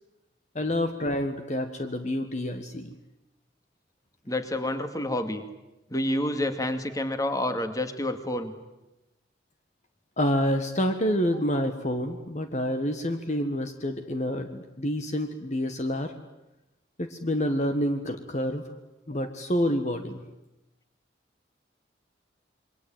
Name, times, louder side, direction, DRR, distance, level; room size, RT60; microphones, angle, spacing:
voice 1, 0.5-2.9 10.2-16.1 17.0-18.6 19.1-20.2, equal, 40° left, 7 dB, 1.6 m, -28 dB
voice 2, 4.3-5.5 5.9-8.5, left 1 dB, 20° left, 8 dB, 2.3 m, -28 dB
28.0 x 23.0 x 9.1 m, 0.94 s
head